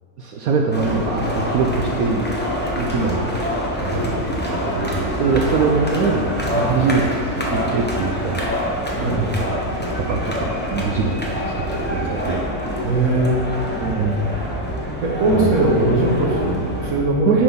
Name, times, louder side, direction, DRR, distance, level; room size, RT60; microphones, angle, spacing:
voice 1, 0.2-2.2 2.7-3.3 3.8-6.2 6.7-7.1 7.5-8.5 9.1-9.6 10.0-11.1 11.5-12.4 13.8-14.3 15.3-15.7 17.3-17.4, right 4 dB, 70° right, 0 dB, 0.8 m, -23 dB
sound 1, 0.7-16.9, equal, 15° left, 0.4 m, -25 dB
voice 2, 12.8-13.7 15.0-17.4, right 2 dB, 55° right, -3 dB, 1.5 m, -20 dB
9.4 x 3.8 x 5.6 m, 2.7 s
omnidirectional pair, 1.9 m